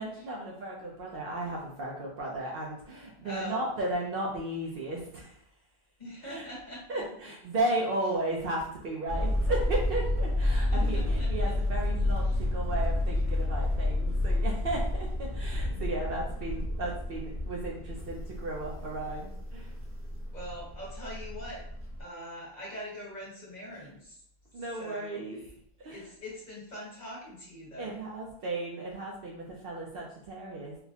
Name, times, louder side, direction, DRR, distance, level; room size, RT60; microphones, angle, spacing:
voice 1, 0.0-5.4 6.2-6.5 6.9-19.7 24.5-25.4 25.8-26.0 27.8-30.8, right 2 dB, 65° right, -3 dB, 0.8 m, -35 dB
voice 2, 3.2-3.6 6.0-7.0 8.1-8.2 10.7-11.5 15.6-16.2 20.3-21.6 22.0-24.2 24.6-25.2 25.9-28.0, equal, 45° left, -5 dB, 1.3 m, -43 dB
sound 1, 9.1-22.0, left 1 dB, 20° right, 0.4 m, -30 dB
4.0 x 2.1 x 2.7 m, 0.66 s
omnidirectional pair, 1.1 m